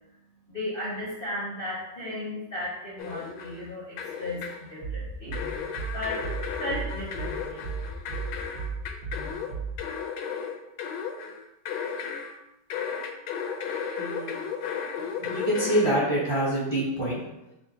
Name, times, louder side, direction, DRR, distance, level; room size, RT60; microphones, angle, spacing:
voice 1, 0.5-4.4 4.7-5.4 5.9-6.2 6.6-7.7, left 1 dB, 45° left, -7 dB, 0.7 m, -35 dB
sound 1, 3.0-3.7 4.0-4.7 5.3-12.4 12.7-16.0, left 6 dB, 80° left, 1.2 m, -34 dB
sound 2, 4.8-9.8, right 4 dB, 85° right, 2.0 m, -35 dB
voice 2, 14.0-14.3 15.2-17.2, right 1 dB, 25° right, -7 dB, 0.7 m, -26 dB
4.3 x 2.0 x 4.4 m, 0.94 s
omnidirectional pair, 2.0 m